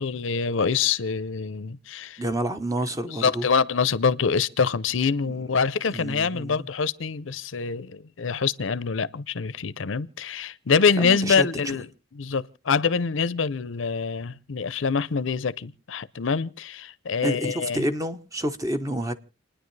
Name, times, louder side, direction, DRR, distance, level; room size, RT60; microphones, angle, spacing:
voice 1, 0.0-2.2 3.1-11.9 12.1-17.9, left 5 dB, 80° left, 0.6 m, -25 dB
voice 2, 2.2-3.5 5.3-5.4 5.9-6.7 11.0-11.5 17.2-19.1, right 1 dB, 15° right, 1.0 m, -29 dB
29.5 x 10.0 x 3.3 m
head